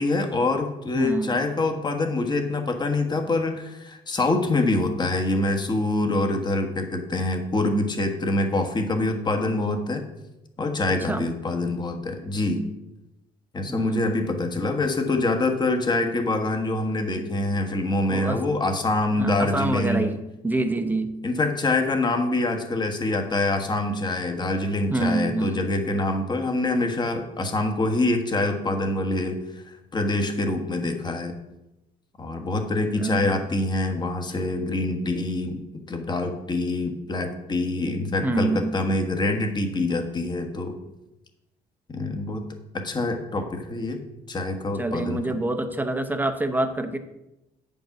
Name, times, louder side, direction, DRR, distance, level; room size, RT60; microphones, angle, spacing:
voice 1, 0.0-10.0 10.6-12.6 13.5-20.1 21.2-29.4 29.9-31.3 32.2-40.7 41.9-42.4 42.7-44.0 44.3-45.4, left 2 dB, 25° left, 4 dB, 1.4 m, -25 dB
voice 2, 0.9-1.3 11.1-11.2 13.7-14.0 18.1-18.4 19.2-20.2 20.4-21.1 24.9-25.6 33.0-33.3 38.2-38.7 44.8-47.0, right 2 dB, 10° right, 8 dB, 0.9 m, -26 dB
8.8 x 5.4 x 5.9 m, 0.95 s
cardioid pair, 110°, 17 cm